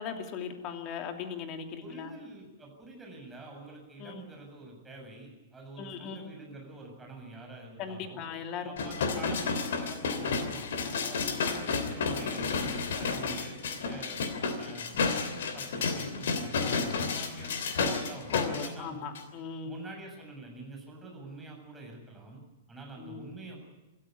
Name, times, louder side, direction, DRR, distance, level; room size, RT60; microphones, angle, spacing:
voice 1, 0.0-2.1 4.0-4.3 5.8-6.3 7.8-8.7 11.3-11.5 18.3-19.8 23.0-23.3, left 7 dB, 35° left, 5 dB, 2.7 m, -38 dB
voice 2, 1.8-8.2 8.6-14.2 14.6-19.1 19.6-23.6, right 2 dB, 10° right, 1 dB, 7.2 m, -47 dB
sound 1, 8.8-18.7 19.1-19.2, left 4 dB, 55° left, 2.9 m, -31 dB
27.0 x 14.0 x 9.4 m, 1.0 s
figure-of-eight pair, 105°, 0 cm